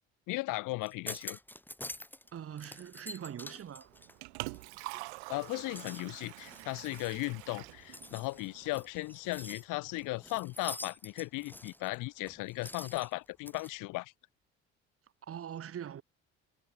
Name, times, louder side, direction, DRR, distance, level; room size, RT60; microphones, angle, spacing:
voice 1, 0.3-1.4 5.3-14.1, left 22 dB, 70° left, 1.0 m, -36 dB
sound 1, 0.8-2.3 2.6-5.0 5.4-13.7, left 1 dB, 5° left, 2.3 m, -47 dB
voice 2, 2.3-3.9 15.2-16.0, right 9 dB, 45° right, 1.2 m, -42 dB
Liquid, 3.8-8.8, right 27 dB, 85° right, 0.6 m, -46 dB
Mechanisms / Drill, 5.6-11.1, left 8 dB, 45° left, 7.0 m, -72 dB
hypercardioid pair, 60°, 33 cm